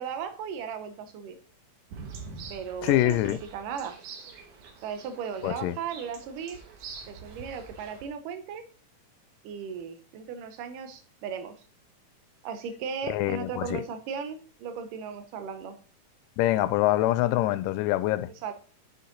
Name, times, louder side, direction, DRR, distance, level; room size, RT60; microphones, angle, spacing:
voice 1, 0.0-1.4 2.5-4.0 4.8-6.6 7.1-8.6 9.4-11.5 12.4-15.8 18.4-18.5, right 7 dB, 85° right, 2.4 m, -36 dB
sound 1, 1.9-8.1, right 5 dB, 70° right, 2.7 m, -45 dB
voice 2, 2.8-3.4 5.4-5.8 13.1-13.8 16.4-18.3, left 15 dB, 90° left, 2.2 m, -25 dB
7.8 x 6.3 x 3.9 m
omnidirectional pair, 3.7 m